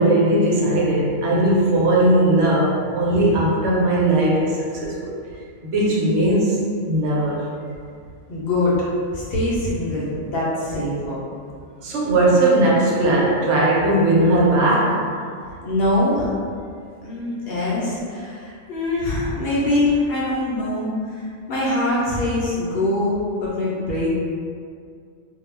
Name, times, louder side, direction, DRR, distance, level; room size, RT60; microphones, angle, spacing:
voice 1, 0.0-5.1 5.6-7.4 11.8-15.1, right 1 dB, 70° right, -4 dB, 0.9 m, -18 dB
voice 2, 8.3-8.8 9.1-11.2 15.6-16.3 17.0-24.1, left 1 dB, 60° left, -7 dB, 0.7 m, -23 dB
2.2 x 2.1 x 3.1 m, 2.2 s
omnidirectional pair, 1.3 m